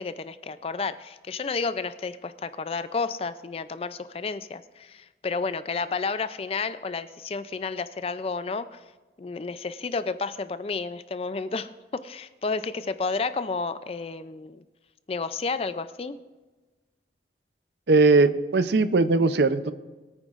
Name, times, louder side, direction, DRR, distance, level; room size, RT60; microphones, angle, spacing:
voice 1, 0.0-8.8 9.2-14.6 15.1-16.2, left 4 dB, 35° left, 13 dB, 0.4 m, -31 dB
voice 2, 17.9-19.7, right 3 dB, 75° right, 12 dB, 0.6 m, -19 dB
22.0 x 9.0 x 2.5 m, 1.2 s
head